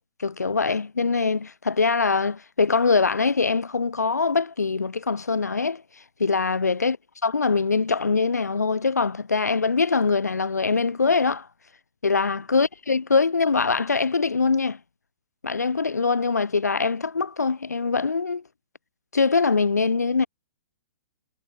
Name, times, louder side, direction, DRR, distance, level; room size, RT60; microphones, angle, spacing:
voice 1, 0.2-5.8 6.2-7.0 7.2-11.5 12.0-14.8 15.4-18.4 19.1-20.3, left 4 dB, 85° left, 7.4 m, -23 dB
hypercardioid pair, 125°, 9 cm